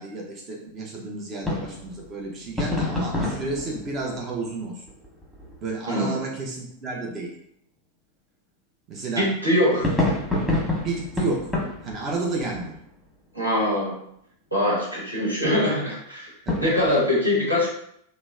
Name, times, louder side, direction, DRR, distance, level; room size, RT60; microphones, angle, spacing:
voice 1, 0.0-4.8 5.6-7.3 8.9-9.3 9.7-9.9 10.8-11.5 11.8-12.8 16.5-16.6, right 3 dB, 30° right, -1 dB, 0.6 m, -31 dB
sound 1, 1.4-5.9 9.8-13.2 13.5-13.6 16.5-17.1, left 2 dB, ahead, 1.0 m, -29 dB
voice 2, 5.9-6.2 9.2-9.9 13.3-13.9 14.5-16.3 16.6-17.7, left 1 dB, 85° right, -6 dB, 1.2 m, -23 dB
3.0 x 2.1 x 3.5 m, 0.72 s
figure-of-eight pair, 90°, 0 cm